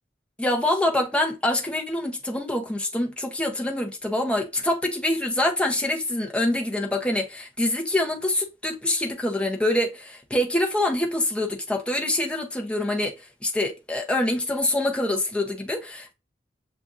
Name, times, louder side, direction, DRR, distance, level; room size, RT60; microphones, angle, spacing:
voice 1, 0.4-13.1 13.4-16.1, left 1 dB, 5° left, 0.7 m, -25 dB
7.1 x 2.5 x 2.5 m
head